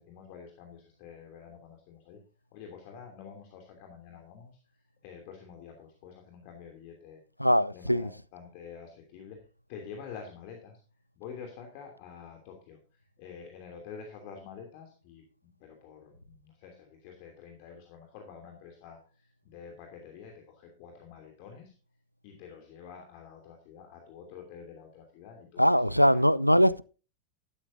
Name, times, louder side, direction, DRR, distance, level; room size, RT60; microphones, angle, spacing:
voice 1, 0.0-2.2 2.5-7.2 7.7-10.8 11.2-21.7 22.2-26.2 26.5-26.6, left 6 dB, 45° left, 2.9 m, -48 dB
voice 2, 7.4-8.1 25.6-26.8, equal, 90° left, 0.4 m, -22 dB
13.5 x 12.0 x 2.7 m
figure-of-eight pair, 90°, 0 cm